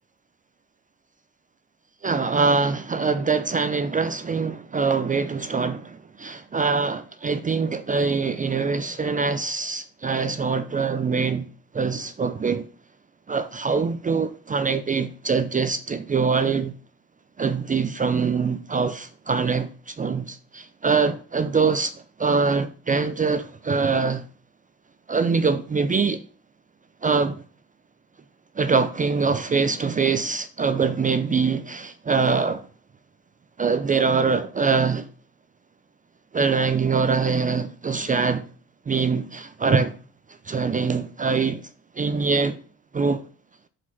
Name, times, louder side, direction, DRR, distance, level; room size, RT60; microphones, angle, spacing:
voice 1, 2.0-11.5 11.7-12.6 13.3-16.7 17.4-21.9 22.2-24.3 25.1-26.2 27.0-27.4 28.6-32.7 33.6-35.1 36.3-38.5 38.9-40.0 40.5-41.6 42.0-42.6 42.9-43.2, right 5 dB, 25° right, 0.5 m, -23 dB
6.0 x 4.8 x 5.9 m
cardioid pair, 90°, 30 cm